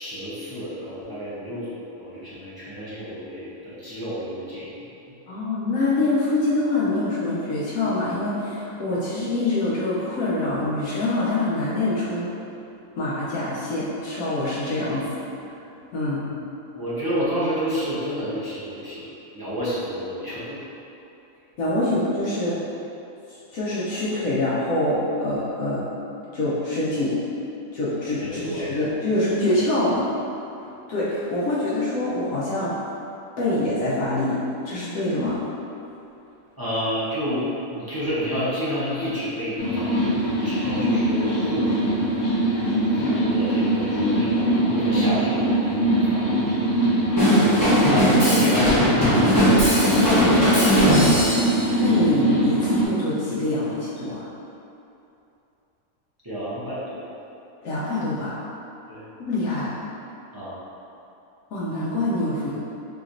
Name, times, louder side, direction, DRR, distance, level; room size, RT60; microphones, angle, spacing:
voice 1, 0.0-4.7 5.1-5.2 16.2-16.4 16.7-20.6 21.8-21.9 28.2-28.7 36.6-40.2 40.4-41.9 42.9-46.6 46.9-47.1 47.6-48.9 49.4-51.0 56.2-57.0 58.9-59.0 60.3-60.6, equal, 25° right, -11 dB, 0.5 m, -30 dB
voice 2, 5.3-12.3 13.0-15.1 15.9-16.2 21.6-22.6 23.3-25.9 26.3-27.2 27.7-30.0 30.9-32.7 33.4-34.4 34.6-35.4 47.2-47.8 51.8-54.2 57.6-58.4 59.2-59.7 61.5-62.5, left 2 dB, 80° left, -9 dB, 1.1 m, -25 dB
sound 1, 39.6-52.9, right 1 dB, 60° left, 0.8 m, -22 dB
Drum kit / Drum, 47.2-51.6, equal, 15° left, 1.0 m, -19 dB
4.1 x 2.9 x 2.5 m, 2.8 s
omnidirectional pair, 1.5 m